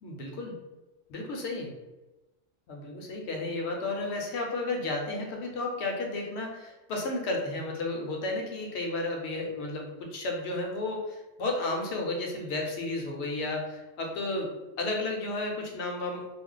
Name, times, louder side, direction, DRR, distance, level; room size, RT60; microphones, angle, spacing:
voice 1, 0.0-0.6 1.1-1.7 2.7-14.5 14.8-16.3, left 2 dB, 65° left, 1 dB, 0.8 m, -33 dB
2.4 x 2.1 x 3.7 m, 1.1 s
omnidirectional pair, 1.4 m